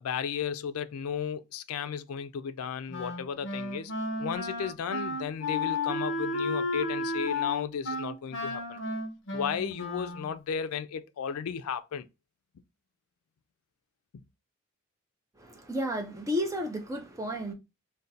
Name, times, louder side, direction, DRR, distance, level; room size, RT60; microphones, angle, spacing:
voice 1, 0.0-3.9 4.2-8.8 9.3-12.1 14.1-14.2, left 7 dB, 90° left, 0.4 m, -34 dB
Wind instrument woodwind instrument, 2.9-10.4, left 2 dB, 60° left, 0.7 m, -33 dB
voice 2, 15.4-17.5, equal, 15° right, 0.5 m, -32 dB
2.5 x 2.1 x 3.8 m
head